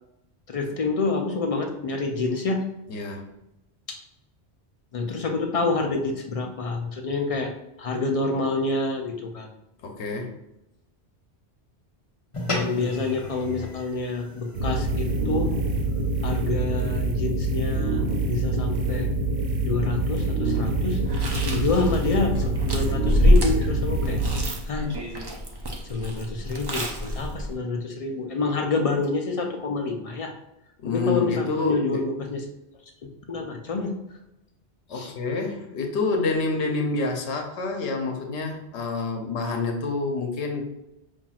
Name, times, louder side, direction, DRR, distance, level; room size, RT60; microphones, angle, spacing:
voice 1, 0.5-2.6 3.9-4.0 4.9-7.5 7.8-9.5 12.5-15.5 16.2-19.1 19.6-21.0 21.5-24.2 24.7-24.9 25.9-30.3 30.9-32.4 33.3-33.9 34.9-35.1, left 3 dB, 55° left, 3 dB, 0.4 m, -28 dB
voice 2, 2.9-3.3 9.8-10.3 30.8-32.1 34.9-40.6, left 3 dB, 85° left, 3 dB, 1.0 m, -28 dB
sound 1, 12.3-17.0, left 2 dB, 30° left, 0.8 m, -36 dB
sound 2, 14.5-24.6, right 2 dB, 75° right, 0.8 m, -25 dB
Chewing mastication, 21.0-27.5, equal, 35° right, 0.4 m, -26 dB
5.6 x 2.5 x 2.3 m, 0.88 s
omnidirectional pair, 1.1 m